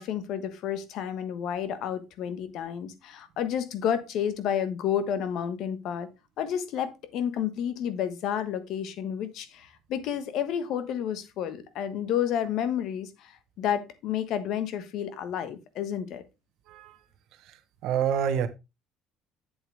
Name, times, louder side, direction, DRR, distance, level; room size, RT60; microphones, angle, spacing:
voice 1, 0.0-6.1 6.4-16.2, left 9 dB, 65° left, 1.3 m, -30 dB
voice 2, 17.8-18.5, right 8 dB, 70° right, 1.1 m, -27 dB
7.9 x 7.8 x 3.3 m
cardioid pair, 125°, 0 cm